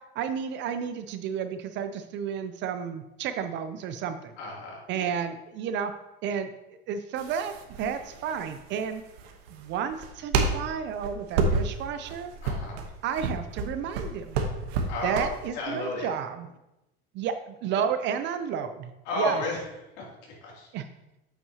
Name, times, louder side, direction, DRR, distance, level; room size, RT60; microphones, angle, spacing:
voice 1, 0.2-4.3 4.9-5.9 6.2-6.5 6.9-9.0 9.5-12.3 13.0-14.4 15.0-16.5 17.1-18.9 19.2-19.4 20.7-20.9, right 7 dB, 40° right, 9 dB, 0.4 m, -32 dB
voice 2, 4.4-5.1 12.4-12.8 14.9-15.3 15.5-16.1 19.1-19.6 20.0-20.7, left 1 dB, 55° left, -3 dB, 2.7 m, -32 dB
sound 1, 7.2-15.5, right 4 dB, 80° right, 1.0 m, -30 dB
8.3 x 5.9 x 2.8 m, 0.95 s
supercardioid pair, 130°, 31 cm